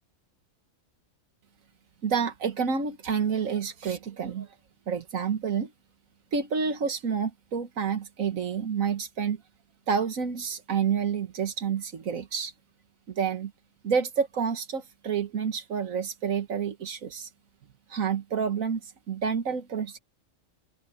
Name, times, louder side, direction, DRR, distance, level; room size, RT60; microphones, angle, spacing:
voice 1, 2.0-4.5 4.9-5.7 6.3-9.4 9.9-12.5 13.1-13.5 13.8-17.3 17.9-20.0, right 6 dB, 90° right, 1.8 m, -29 dB
omnidirectional pair, 1.4 m